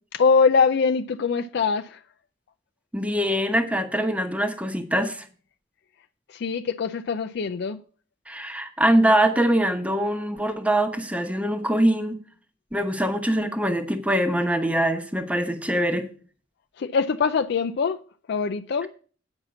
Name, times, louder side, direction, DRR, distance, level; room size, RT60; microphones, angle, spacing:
voice 1, 0.1-2.0 6.3-7.8 16.8-18.0 18.3-18.9, left 5 dB, 60° left, 0.4 m, -23 dB
voice 2, 2.9-5.2 8.3-12.2 12.7-16.1, right 1 dB, 5° right, 1.0 m, -23 dB
8.8 x 5.8 x 6.8 m
head